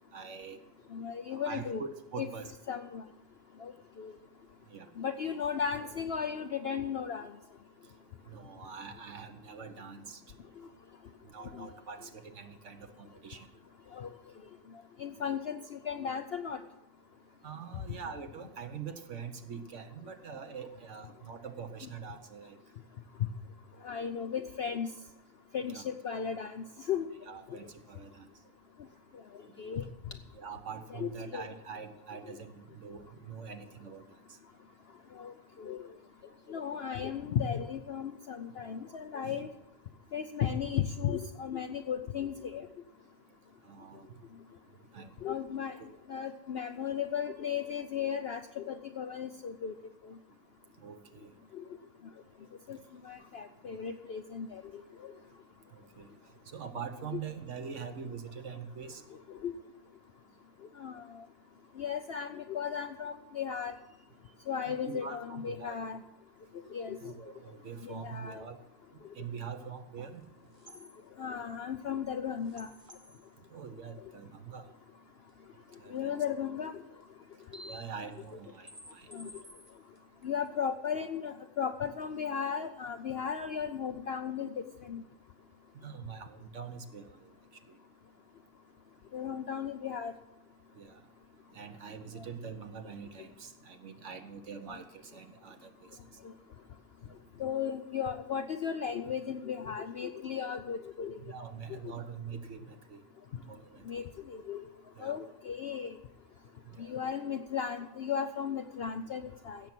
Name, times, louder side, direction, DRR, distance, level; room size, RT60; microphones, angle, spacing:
voice 1, 0.1-0.6 1.3-2.5 4.7-4.9 8.3-10.2 11.3-13.5 17.4-22.6 25.7-25.8 27.2-28.3 30.3-34.0 39.2-39.4 43.7-44.1 44.9-45.1 45.8-45.9 50.8-51.3 55.7-56.1 56.5-59.0 64.7-65.8 67.0-68.6 69.1-70.2 73.5-74.7 75.8-76.1 77.7-79.1 85.7-87.3 90.8-91.0 91.5-95.9 101.2-103.0 103.5-104.0 105.0-105.1 106.7-107.1, right 6 dB, 55° right, 8 dB, 1.2 m, -44 dB
voice 2, 0.9-1.8 2.2-2.3 2.7-3.0 3.6-3.7 4.0-4.1 5.0-7.3 10.6-10.7 11.5-11.7 13.9-14.1 15.0-16.6 23.8-24.9 25.5-27.0 27.5-27.6 29.6-29.9 30.9-31.4 32.3-32.4 35.2-35.8 36.5-39.5 40.1-42.7 45.2-45.8 46.1-49.7 51.5-51.6 52.7-52.8 53.0-54.6 55.0-55.1 59.4-59.5 60.8-61.2 61.8-63.8 64.5-66.0 66.7-67.1 67.8-68.4 71.2-72.7 75.9-76.8 79.1-79.3 80.2-85.0 89.1-90.1 94.7-94.8 97.4-101.2 101.7-101.9 103.9-104.6 105.0-106.0 106.8-109.6, left 7 dB, 65° left, 8 dB, 0.6 m, -35 dB
sound 1, 70.2-70.3 70.5-71.0 72.4-73.3 75.3-75.4 76.0-76.1 77.0-77.1 77.3-81.0 81.3-81.4 81.6-81.7 82.0-82.1 82.4-82.8 83.1-83.2, equal, 25° right, 1.0 m, -53 dB
16.5 x 7.1 x 6.1 m, 0.91 s
omnidirectional pair, 1.6 m